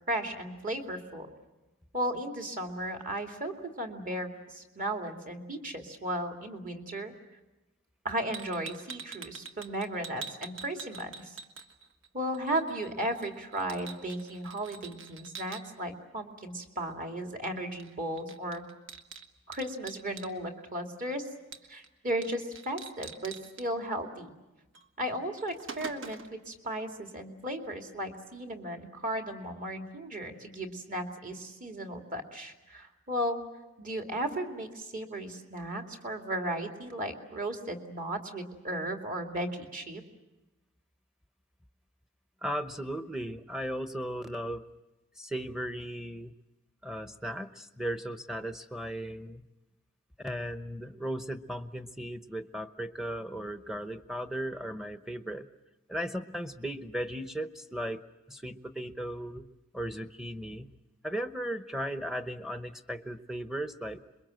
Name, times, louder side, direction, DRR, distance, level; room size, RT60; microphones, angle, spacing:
voice 1, 0.1-1.3 1.9-7.1 8.0-11.4 12.1-18.6 19.5-21.3 21.7-24.3 25.0-33.4 33.8-40.0, right 1 dB, 40° right, 3 dB, 2.5 m, -35 dB
sound 1, 8.3-12.1 12.3-15.6 17.8-17.9 18.2-20.3 21.5-21.9 22.2-22.3 22.6-23.7 24.7-24.9 25.2-26.4, right 5 dB, 60° right, 1.5 m, -45 dB
voice 2, 42.4-44.7 45.2-46.4 46.8-49.4 50.2-55.5 55.9-58.0 58.3-59.5 59.7-60.7 61.0-64.0, equal, ahead, 9 dB, 0.9 m, -36 dB
27.0 x 22.5 x 7.7 m, 1.0 s
head